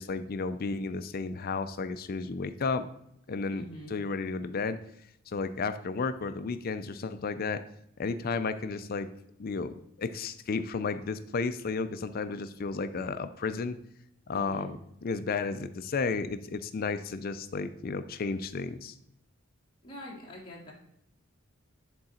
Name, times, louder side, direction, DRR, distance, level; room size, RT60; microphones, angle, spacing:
voice 1, 0.0-2.9 3.3-4.8 5.3-7.6 8.0-9.1 9.4-13.8 14.3-18.9, left 4 dB, 45° left, 11 dB, 0.5 m, -33 dB
voice 2, 3.5-4.0 14.3-14.7 19.8-20.7, equal, 25° left, -4 dB, 1.9 m, -44 dB
10.0 x 3.9 x 4.3 m, 0.76 s
head